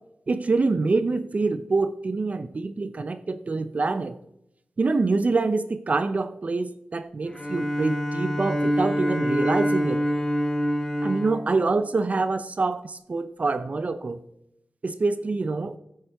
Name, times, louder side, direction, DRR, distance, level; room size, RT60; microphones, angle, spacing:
voice 1, 0.3-4.2 4.8-10.0 11.0-14.2 14.8-15.8, right 3 dB, 50° right, 0.6 m, -25 dB
Bowed string instrument, 7.3-12.5, equal, 20° left, 1.8 m, -27 dB
15.5 x 8.2 x 3.4 m
wide cardioid pair, 75°, 3 cm